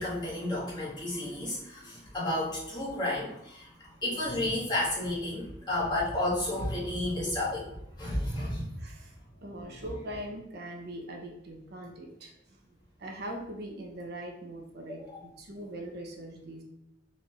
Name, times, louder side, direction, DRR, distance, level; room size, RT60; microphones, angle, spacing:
voice 1, 0.0-7.7 8.0-8.7 14.9-15.2, left 1 dB, 25° left, -7 dB, 1.5 m, -32 dB
voice 2, 8.8-12.6 13.0-16.6, right 1 dB, 60° right, 1 dB, 0.7 m, -41 dB
4.1 x 2.5 x 4.3 m, 0.80 s
head